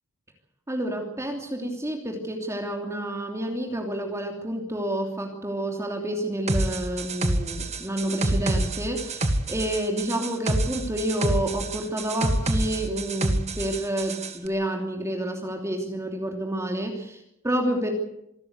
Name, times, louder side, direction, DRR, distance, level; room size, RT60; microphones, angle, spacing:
voice 1, 0.7-17.9, right 1 dB, 15° right, 2 dB, 3.0 m, -29 dB
sound 1, 6.5-14.3, right 1 dB, 35° right, 1.9 m, -27 dB
26.5 x 13.5 x 9.7 m, 0.81 s
head